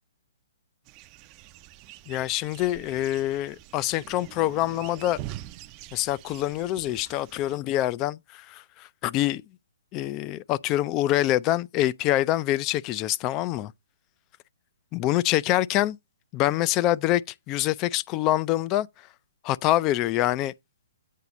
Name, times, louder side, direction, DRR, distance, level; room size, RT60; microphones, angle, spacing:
sound 1, 0.9-7.6, right 14 dB, 30° right, 0.5 m, -44 dB
voice 1, 2.1-5.2 5.9-9.4 9.9-13.7 14.9-16.0 16.3-17.2 17.5-18.9 19.4-20.5, left 14 dB, 25° left, 0.4 m, -25 dB
8.4 x 4.0 x 5.9 m
hypercardioid pair, 140°, 0 cm